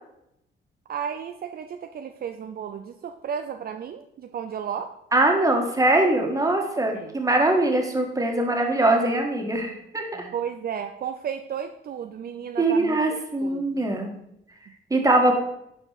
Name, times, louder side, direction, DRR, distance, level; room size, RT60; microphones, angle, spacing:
voice 1, 0.9-4.9 6.9-7.1 10.3-13.9, right 8 dB, 50° right, 6 dB, 0.6 m, -33 dB
voice 2, 5.1-10.3 12.6-14.1 14.9-15.3, right 2 dB, 15° right, 2 dB, 1.8 m, -22 dB
11.0 x 4.7 x 4.2 m, 0.79 s
cardioid pair, 90°, 20 cm